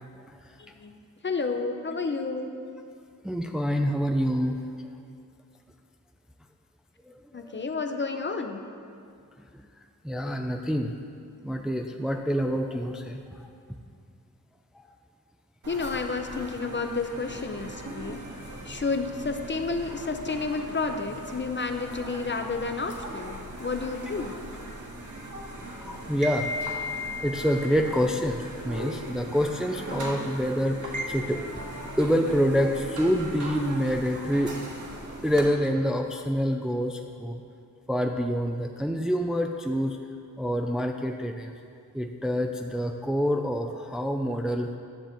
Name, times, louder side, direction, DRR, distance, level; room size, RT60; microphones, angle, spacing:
voice 1, 0.6-1.0 1.2-2.5 7.3-8.6 15.7-18.2 18.6-24.4, left 4 dB, 35° left, 6 dB, 0.7 m, -31 dB
voice 2, 3.2-4.6 7.1-7.2 7.5-7.6 10.0-10.9 11.4-13.2 14.8-14.9 25.8-26.5 27.2-31.4 31.9-34.5 35.2-37.4 37.9-40.0 40.4-41.5 41.9-44.7, equal, ahead, 3 dB, 0.5 m, -27 dB
sound 1, 15.6-35.5, equal, 60° right, 1.6 m, -38 dB
10.5 x 6.6 x 4.4 m, 2.3 s
cardioid pair, 70°, 34 cm